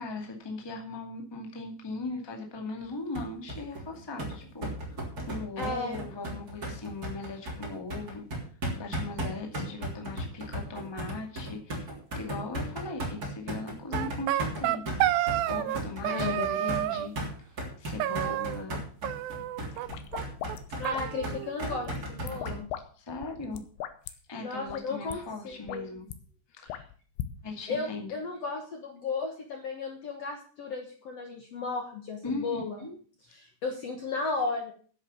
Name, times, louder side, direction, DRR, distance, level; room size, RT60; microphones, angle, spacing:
voice 1, 0.0-8.2 8.7-14.8 15.5-17.1 17.5-18.8 22.9-23.6 24.3-26.1 26.5-26.7 27.4-28.1 32.2-32.9, left 3 dB, 10° left, 1 dB, 1.4 m, -39 dB
sound 1, 3.1-22.6, right 1 dB, 25° right, 3.4 m, -36 dB
voice 2, 5.6-6.0 16.1-16.5 20.8-22.7 24.4-25.9 26.6-26.8 27.7-32.8 33.3-34.7, left 4 dB, 55° left, 3 dB, 2.0 m, -34 dB
sound 2, 13.9-17.1 18.0-18.8 19.0-19.9 20.1-20.2 20.5-20.6 20.8-21.9, right 13 dB, 80° right, 2.4 m, -30 dB
sound 3, 19.7-21.4 21.8-22.8 23.1-24.1 24.7-24.8 25.1-25.2 25.5-26.2 26.7-27.3, left 11 dB, 85° left, 2.9 m, -39 dB
10.0 x 8.3 x 7.0 m, 0.43 s
omnidirectional pair, 4.3 m